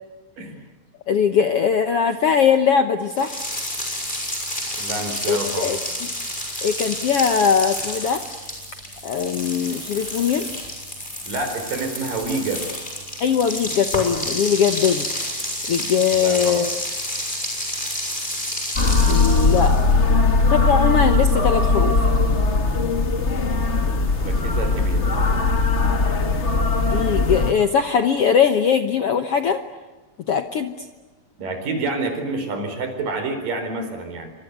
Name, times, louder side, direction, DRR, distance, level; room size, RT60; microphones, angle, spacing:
voice 1, 1.1-3.4 5.3-6.1 6.6-8.2 9.0-10.5 13.2-15.1 15.7-16.7 19.1-19.7 20.5-21.9 26.9-29.6 30.3-30.7, left 7 dB, 65° left, 8 dB, 1.5 m, -20 dB
sound 1, 3.1-19.9, equal, 10° left, 8.2 m, -29 dB
voice 2, 4.8-5.8 11.3-12.7 16.1-16.6 24.2-25.1 31.4-34.3, right 3 dB, 70° right, 7 dB, 6.0 m, -28 dB
sound 2, 18.7-27.5, left 3 dB, 40° left, 0.9 m, -19 dB
28.0 x 25.5 x 8.1 m, 1.3 s
omnidirectional pair, 4.0 m